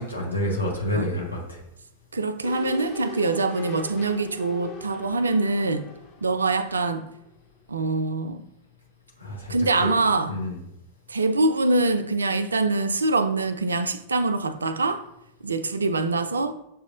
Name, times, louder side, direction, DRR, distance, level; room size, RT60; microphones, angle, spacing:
voice 1, 0.0-1.6 9.2-9.5 9.8-9.9 10.3-10.6, left 1 dB, 85° left, 1.2 m, -28 dB
voice 2, 2.1-5.9 6.2-7.1 7.7-8.4 9.5-10.3 11.1-15.0 15.4-16.5, right 3 dB, 75° right, 0.3 m, -24 dB
sound 1, 2.4-7.4 7.7-7.8, left 2 dB, 40° left, 0.9 m, -40 dB
7.0 x 3.1 x 2.4 m
figure-of-eight pair, 90°, 0 cm